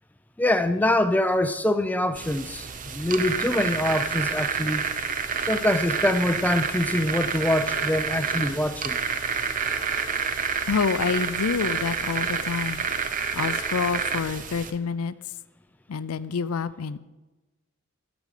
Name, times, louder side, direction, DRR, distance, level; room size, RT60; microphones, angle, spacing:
voice 1, 0.4-4.8 5.5-9.0, left 1 dB, 5° left, 11 dB, 0.4 m, -24 dB
sound 1, 2.1-14.7, right 6 dB, 35° right, 0.6 m, -28 dB
voice 2, 10.7-12.9 13.3-15.1 15.9-17.0, left 5 dB, 80° left, 15 dB, 0.4 m, -27 dB
12.5 x 5.1 x 6.6 m, 1.1 s
head